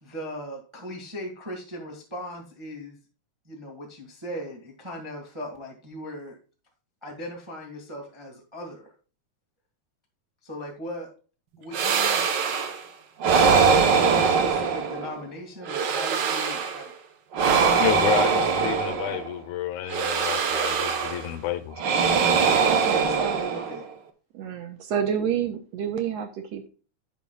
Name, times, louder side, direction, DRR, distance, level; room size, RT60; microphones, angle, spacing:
voice 1, 0.0-3.0 3.4-6.4 7.0-8.9 10.4-11.1 11.6-12.2 13.6-16.9 17.5-19.2 22.4-23.9, equal, 15° right, 1.3 m, -38 dB
sound 1, 11.7-12.8 13.2-15.2 15.6-16.9 17.3-19.3 19.9-21.3 21.8-23.9, right 5 dB, 85° right, 0.9 m, -22 dB
voice 2, 17.8-21.8, left 12 dB, 85° left, 2.2 m, -30 dB
voice 3, 22.6-23.6 24.3-26.7, right 8 dB, 70° right, 1.9 m, -29 dB
10.5 x 7.4 x 2.3 m
omnidirectional pair, 3.4 m